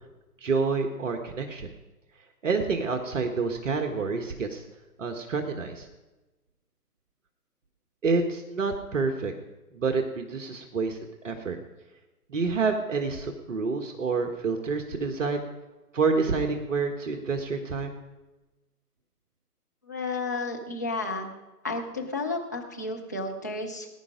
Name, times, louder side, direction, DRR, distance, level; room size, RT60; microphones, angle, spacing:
voice 1, 0.4-1.7 2.4-4.6 5.0-5.9 8.0-9.3 9.7-11.6 12.3-15.4 15.9-17.9, right 4 dB, 50° right, 5 dB, 1.5 m, -28 dB
voice 2, 19.8-21.3 21.6-23.9, left 3 dB, 10° left, -2 dB, 0.5 m, -32 dB
19.5 x 10.0 x 5.0 m, 1.1 s
figure-of-eight pair, 135°, 48 cm